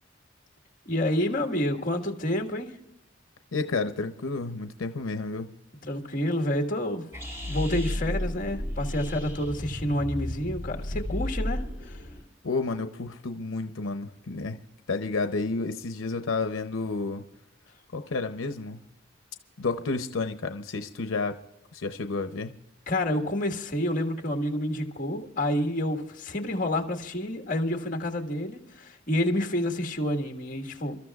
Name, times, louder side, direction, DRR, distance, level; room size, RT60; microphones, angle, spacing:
voice 1, 0.8-2.7 5.8-7.0 7.5-12.0 22.9-31.0, left 1 dB, 45° left, 1.6 m, -29 dB
voice 2, 3.5-5.5 12.4-14.6 14.9-17.2 17.9-18.8 19.6-21.4 21.7-22.5, left 3 dB, 85° left, 0.7 m, -31 dB
sound 1, 7.1-12.2, left 1 dB, 15° right, 2.7 m, -33 dB
29.5 x 13.0 x 2.4 m
head